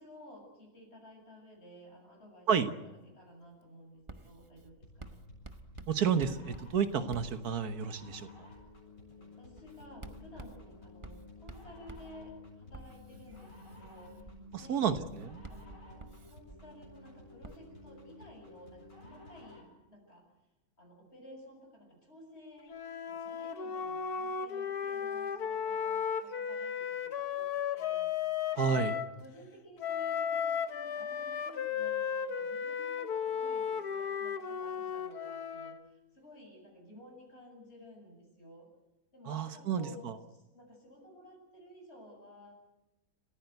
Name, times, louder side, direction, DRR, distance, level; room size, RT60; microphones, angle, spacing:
voice 1, 0.0-2.5 3.1-5.2 9.1-14.8 15.5-20.2 20.8-22.8 23.1-28.4 28.7-38.7 39.1-42.5, left 1 dB, 45° left, 1 dB, 7.7 m, -54 dB
Writing, 4.1-8.0 8.6-8.9 9.6-17.0 17.4-17.6, right 2 dB, 25° right, 0.8 m, -51 dB
sound 1, 4.8-19.8, left 2 dB, 60° left, 8.0 m, -53 dB
voice 2, 5.9-8.5 14.5-15.4 28.5-28.9 39.3-40.2, right 7 dB, 85° right, 9 dB, 1.7 m, -31 dB
Wind instrument woodwind instrument, 22.7-29.1 29.8-35.8, left 7 dB, 90° left, 1.7 m, -35 dB
28.5 x 15.0 x 8.1 m, 1.0 s
omnidirectional pair, 1.6 m